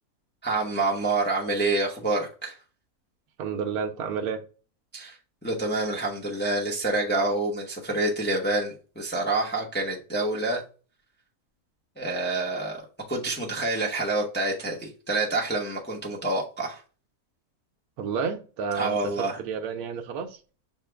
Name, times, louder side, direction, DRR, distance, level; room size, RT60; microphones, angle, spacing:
voice 1, 0.4-2.6 4.9-10.6 12.0-12.8 13.1-16.8 18.7-19.4, right 2 dB, 10° left, 0.6 m, -27 dB
voice 2, 3.4-4.4 18.0-20.4, right 6 dB, 75° right, 1.1 m, -30 dB
6.5 x 2.3 x 3.3 m
omnidirectional pair, 1.6 m